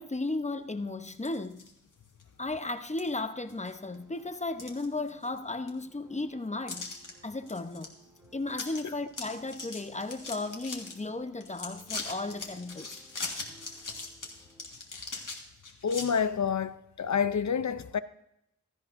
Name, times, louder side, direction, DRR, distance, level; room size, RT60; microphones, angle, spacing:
voice 1, 0.0-1.7 2.4-6.9 7.2-7.9 8.3-13.0, left 2 dB, 25° left, 0.8 m, -35 dB
sound 1, 1.1-1.7 2.2-2.3 3.0-3.1 3.5-4.0 4.3-5.4 5.7-5.8 6.7-7.1 7.5-7.9 8.2-8.3 8.5-8.8 9.1-10.9 11.4-16.1, left 3 dB, 90° left, 1.7 m, -40 dB
sound 2, 3.0-14.7, equal, 15° right, 4.5 m, -61 dB
voice 2, 15.8-18.0, left 7 dB, 65° left, 0.6 m, -28 dB
16.0 x 13.5 x 2.6 m
wide cardioid pair, 45°, 31 cm